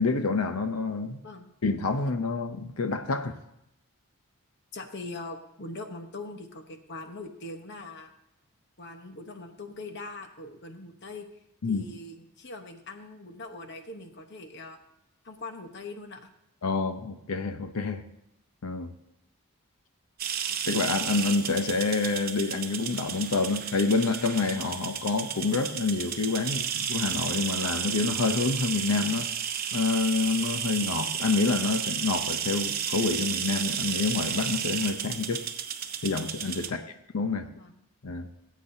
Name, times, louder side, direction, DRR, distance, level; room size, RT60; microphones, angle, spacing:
voice 1, 0.0-1.2 1.6-3.4 11.6-11.8 16.6-18.0 18.6-18.9 20.6-29.3 29.7-35.4 36.0-36.8 37.1-37.5 38.0-38.3, left 4 dB, 80° left, 0.7 m, -27 dB
voice 2, 4.7-8.1 8.8-11.3 11.7-14.8 15.2-16.3 36.6-36.9 37.4-37.8, left 2 dB, 50° left, 1.0 m, -42 dB
sound 1, 20.2-36.7, right 8 dB, 40° right, 0.7 m, -32 dB
19.5 x 8.4 x 2.7 m
head